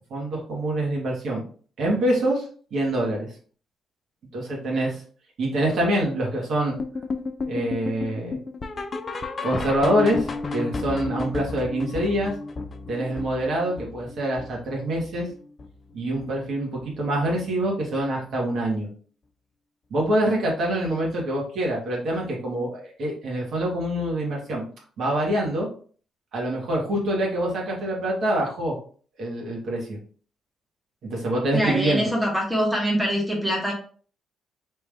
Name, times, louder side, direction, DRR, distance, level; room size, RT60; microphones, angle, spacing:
voice 1, 0.1-1.5 1.8-2.5 2.7-3.3 4.3-5.0 5.4-6.8 7.5-8.4 9.4-12.3 12.9-15.3 15.9-18.9 19.9-24.6 25.0-25.7 26.3-28.8 29.2-30.0 31.0-32.1, right 1 dB, 65° right, -2 dB, 1.7 m, -25 dB
sound 1, 6.8-15.9 16.2-16.5 16.8-16.9 17.4-17.5 18.0-18.1, left 3 dB, 35° left, 0.5 m, -32 dB
voice 2, 31.5-33.7, equal, 5° right, -2 dB, 1.3 m, -24 dB
3.4 x 3.0 x 3.5 m, 0.43 s
cardioid pair, 90°, 0 cm